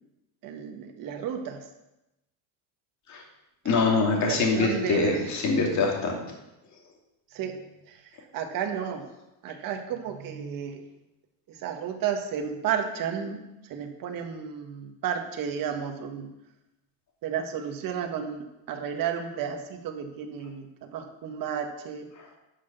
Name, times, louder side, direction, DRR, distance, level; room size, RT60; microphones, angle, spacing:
voice 1, 0.4-1.6 4.1-5.3 7.3-7.6 7.9-8.0 8.3-9.0 9.4-10.9 11.5-13.4 13.7-16.3 17.2-22.1, right 8 dB, 45° right, 4 dB, 1.6 m, -32 dB
voice 2, 3.6-6.2, left 3 dB, 35° left, 0 dB, 2.7 m, -24 dB
11.0 x 6.1 x 6.8 m, 0.95 s
cardioid pair, 145°, 47 cm